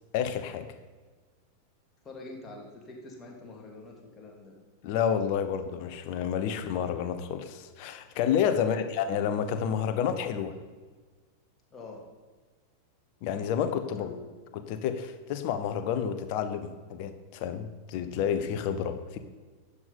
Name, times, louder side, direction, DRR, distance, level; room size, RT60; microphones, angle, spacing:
voice 1, 0.1-0.7 4.8-10.6 13.2-14.1 14.5-19.2, left 8 dB, 45° left, 9 dB, 1.1 m, -30 dB
voice 2, 2.0-4.5 8.6-8.9 11.7-12.1 14.0-14.3, left 3 dB, 20° left, -1 dB, 3.2 m, -45 dB
12.5 x 8.3 x 5.7 m, 1.4 s
figure-of-eight pair, 90°, 0 cm